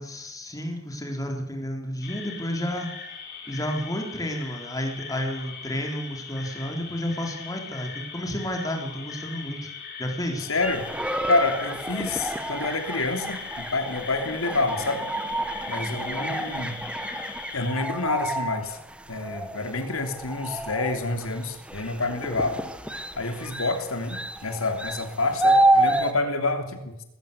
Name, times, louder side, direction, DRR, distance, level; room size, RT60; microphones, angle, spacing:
voice 1, 0.0-2.9 3.5-9.7 10.0-10.5 15.9-16.3, equal, 15° left, 3 dB, 4.0 m, -31 dB
sound 1, 2.0-17.7, left 6 dB, 50° left, 4.5 m, -40 dB
voice 2, 10.5-10.9 11.3-15.0 15.7-16.8 17.5-18.8 19.1-22.6 23.1-27.0, left 3 dB, 75° left, 6 dB, 3.2 m, -28 dB
sound 2, 10.6-26.1, right 1 dB, 5° right, 1.2 m, -29 dB
20.0 x 16.0 x 8.3 m, 0.84 s
head